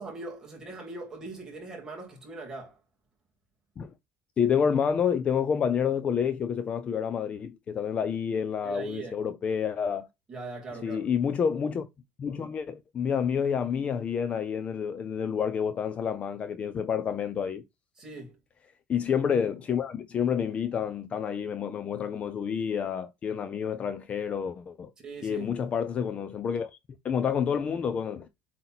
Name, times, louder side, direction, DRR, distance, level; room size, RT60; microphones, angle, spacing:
voice 1, 0.0-2.8 8.6-9.1 10.3-11.1 18.0-18.4 25.0-25.5, right 3 dB, 15° right, 2.6 m, -40 dB
voice 2, 4.4-10.1 10.7-11.9 12.2-17.6 18.9-24.9 25.2-26.8 27.0-28.3, left 7 dB, 25° left, 0.4 m, -29 dB
7.9 x 2.9 x 4.1 m
cardioid pair, 175°, 5 cm